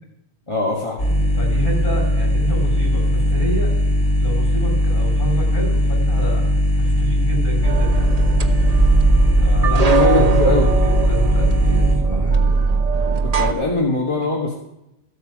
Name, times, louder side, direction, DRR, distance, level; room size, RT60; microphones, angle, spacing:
voice 1, 0.5-1.1 9.6-10.7 13.2-14.5, left 2 dB, 25° left, -2 dB, 1.5 m, -21 dB
sound 1, 1.0-11.9, left 1 dB, 70° left, 3.8 m, -19 dB
voice 2, 1.4-3.7 4.2-8.1 9.4-12.5, right 1 dB, 45° left, -1 dB, 5.4 m, -29 dB
sound 2, 7.6-13.5, right 4 dB, 35° right, 0.9 m, -19 dB
14.5 x 8.7 x 6.1 m, 0.92 s
omnidirectional pair, 1.2 m